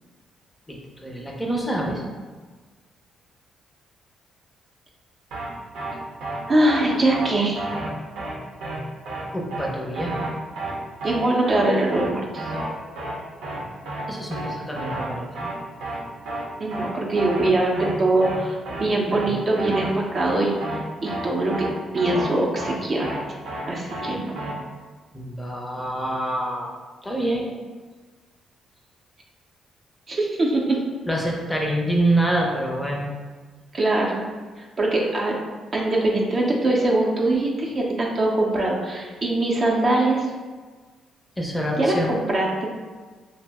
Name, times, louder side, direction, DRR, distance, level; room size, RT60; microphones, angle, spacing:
voice 1, 1.0-2.0 9.3-10.1 14.1-15.5 25.1-26.7 27.0-27.5 31.1-33.1 41.4-42.1, right 1 dB, 10° left, -2 dB, 0.5 m, -26 dB
sound 1, 5.3-5.5 5.7-5.9 6.2-6.4 6.7-6.8 7.1-7.3 7.6-7.9 8.2-8.3 8.6-8.8 9.1-9.2 9.5-9.7 9.9-10.3 10.6-10.7 11.0-11.2 11.5-11.6 11.9-12.1 12.4-12.7 13.0-13.1 13.4-13.6 13.9-14.0 14.3-14.5 14.8-15.1 15.3-15.5 15.8-16.0 16.3-16.4 16.7-16.9 17.2-17.5 17.8-17.9 18.2-18.4 18.7-18.8 19.1-19.3 19.5-19.9 20.2-20.3 20.6-20.8 21.1-21.2 21.5-21.7 22.0-22.3 22.6-22.7 23.0-23.2 23.5-23.6 23.9-24.1 24.4-24.5, right 2 dB, 85° right, 0.7 m, -31 dB
voice 2, 6.5-7.6 11.0-12.4 16.6-20.6 21.0-21.7 21.9-23.1 23.7-24.4 30.1-30.8 33.7-34.2 34.6-35.4 35.7-40.3 41.8-42.7, right 2 dB, 40° right, -2 dB, 0.5 m, -22 dB
2.6 x 2.0 x 3.4 m, 1.4 s
cardioid pair, 90°, 0 cm